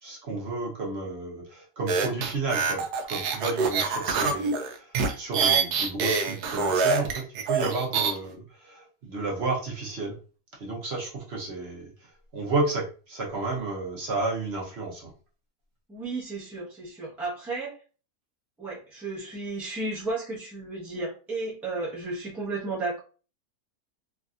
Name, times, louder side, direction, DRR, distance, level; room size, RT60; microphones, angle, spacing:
voice 1, 0.0-10.2 10.6-11.9 12.3-15.1, right 3 dB, 55° right, -2 dB, 0.8 m, -32 dB
sound 1, 1.9-8.1, right 5 dB, 80° right, 1.1 m, -25 dB
voice 2, 15.9-17.7 18.6-23.0, right 3 dB, ahead, -6 dB, 0.6 m, -33 dB
3.2 x 2.6 x 2.4 m, 0.37 s
omnidirectional pair, 1.7 m